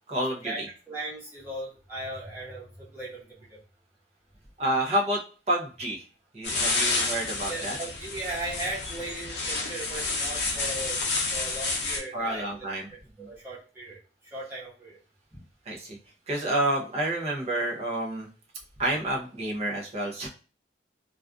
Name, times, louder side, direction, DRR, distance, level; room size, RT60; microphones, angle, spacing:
voice 1, 0.1-0.5 4.6-5.2 5.5-6.0 6.3-7.8 12.1-12.9 13.2-13.3 15.7-16.0 16.3-18.3 18.8-20.3, right 1 dB, 35° right, -2 dB, 0.6 m, -29 dB
voice 2, 0.9-3.6 7.5-11.0 11.3-14.0 14.3-15.0 15.3-15.4, right 2 dB, 15° right, -8 dB, 0.9 m, -38 dB
sound 1, 6.4-12.0, left 3 dB, 70° left, 0.6 m, -29 dB
2.4 x 2.4 x 2.2 m, 0.36 s
head